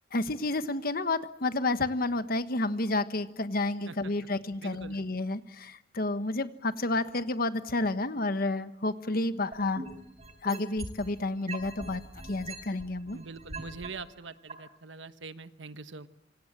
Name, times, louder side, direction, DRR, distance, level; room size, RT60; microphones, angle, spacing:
voice 1, 0.1-9.8 10.4-12.0 12.3-13.2, left 2 dB, 55° left, 11 dB, 1.3 m, -30 dB
voice 2, 4.6-5.0 13.1-16.1, right 4 dB, 90° right, 11 dB, 1.3 m, -43 dB
sound 1, 9.5-11.1 11.5-13.9 14.5-14.6, right 3 dB, 35° right, 4.5 m, -41 dB
26.5 x 25.0 x 7.4 m, 0.80 s
head